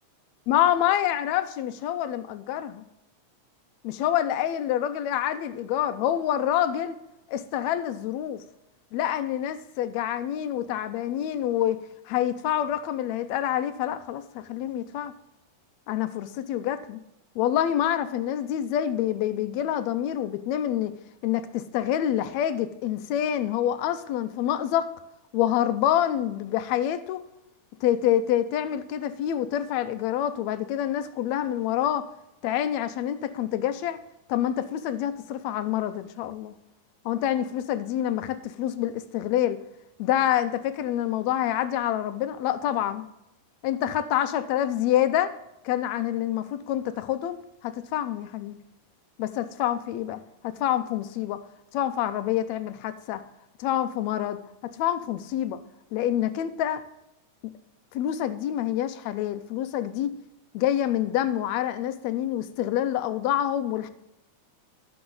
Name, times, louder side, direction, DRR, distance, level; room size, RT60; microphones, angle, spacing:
voice 1, 0.5-2.8 3.8-6.9 7.3-8.4 8.9-15.1 15.9-17.0 17.3-20.9 21.2-24.9 25.3-27.2 27.8-32.1 32.4-34.0 34.3-36.5 37.0-39.6 40.0-43.1 43.6-45.4 45.6-47.4 47.6-48.6 49.2-51.4 51.7-53.2 53.6-55.6 55.9-56.8 57.9-60.1 60.5-63.9, left 11 dB, 80° left, 1.8 m, -27 dB
12.0 x 6.8 x 3.9 m
omnidirectional pair, 3.3 m